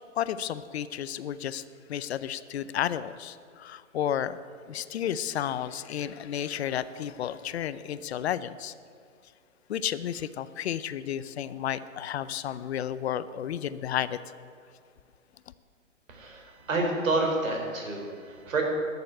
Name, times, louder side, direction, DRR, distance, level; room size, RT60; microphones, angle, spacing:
voice 1, 0.2-1.6 1.9-4.4 4.7-8.7 9.7-14.2, left 10 dB, 55° left, 15 dB, 0.6 m, -32 dB
voice 2, 16.1-18.6, right 2 dB, 75° right, 1 dB, 4.3 m, -29 dB
11.5 x 7.0 x 9.7 m, 2.2 s
hypercardioid pair, 145°, 39 cm